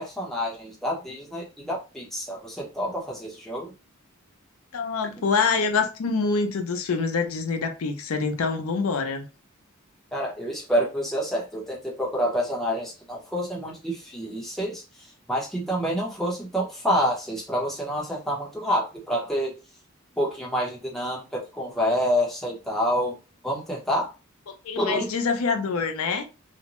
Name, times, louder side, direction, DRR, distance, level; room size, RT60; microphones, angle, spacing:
voice 1, 0.0-3.7 10.1-14.8 15.3-19.5 20.2-23.1 23.4-24.1 24.8-25.1, equal, ahead, 0.7 m, -28 dB
voice 2, 4.7-9.3 24.5-26.2, left 4 dB, 85° left, 0.5 m, -26 dB
2.5 x 2.1 x 2.9 m
head